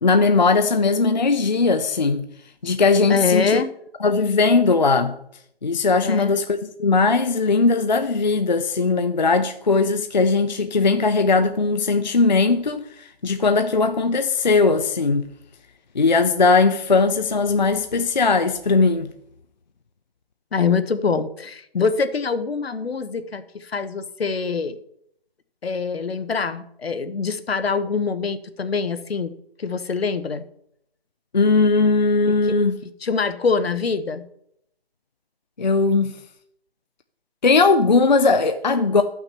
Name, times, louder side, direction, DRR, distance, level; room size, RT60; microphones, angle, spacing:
voice 1, 0.0-2.3 2.6-3.6 4.0-5.2 5.6-15.3 16.0-19.1 31.3-32.8 35.6-36.2 37.4-39.0, left 4 dB, 45° left, 0.4 m, -19 dB
voice 2, 3.1-3.7 6.0-6.3 20.5-24.8 25.6-29.3 29.6-30.4 32.2-32.5 33.0-34.3, left 5 dB, 70° left, 1.0 m, -24 dB
12.5 x 5.8 x 4.3 m
hypercardioid pair, 175°, 31 cm